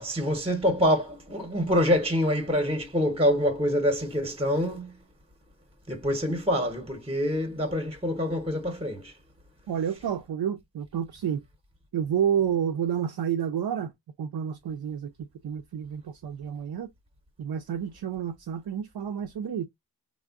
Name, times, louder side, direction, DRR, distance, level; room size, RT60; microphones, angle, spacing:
voice 1, 0.0-4.9 5.9-9.1, equal, 15° right, 0.8 m, -26 dB
voice 2, 9.7-11.4 11.9-13.9 14.2-16.9 17.4-19.6, right 8 dB, 65° right, 0.5 m, -30 dB
3.5 x 2.1 x 2.3 m
wide cardioid pair, 60°, 42 cm